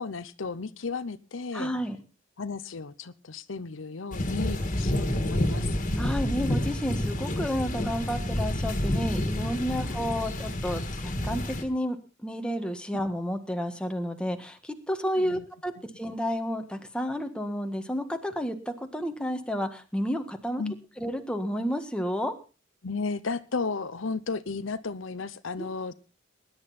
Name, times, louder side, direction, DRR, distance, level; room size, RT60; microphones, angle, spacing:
voice 1, 0.0-1.7 2.4-5.8 9.8-10.2 15.2-15.4 20.6-20.7 22.8-25.9, left 4 dB, 85° left, 13 dB, 0.8 m, -34 dB
voice 2, 1.5-2.0 6.0-20.6 21.0-22.3 25.6-25.7, equal, 5° left, 5 dB, 1.6 m, -31 dB
sound 1, 4.1-11.6, left 1 dB, 40° left, 2.2 m, -29 dB
20.0 x 10.5 x 4.3 m, 0.34 s
head